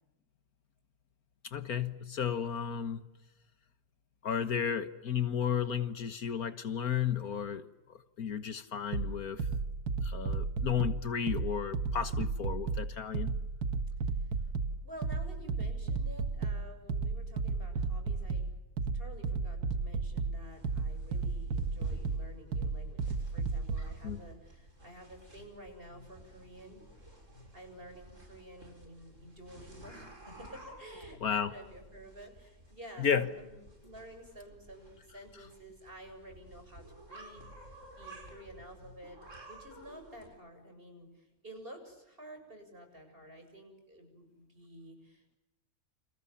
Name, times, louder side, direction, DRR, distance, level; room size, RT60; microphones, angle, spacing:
voice 1, 1.5-3.0 4.2-9.5 10.0-13.3 24.0-24.2 31.2-31.5 33.0-33.3, left 8 dB, 65° left, 1.8 m, -33 dB
sound 1, 8.9-23.9, right 4 dB, 75° right, 2.1 m, -34 dB
voice 2, 14.0-14.4 14.8-18.5 18.9-26.8 27.5-39.2 39.5-45.4, right 1 dB, 35° right, 7.5 m, -51 dB
sound 2, 20.4-40.3, right 1 dB, 50° right, 7.2 m, -53 dB
30.0 x 28.5 x 7.1 m
omnidirectional pair, 1.7 m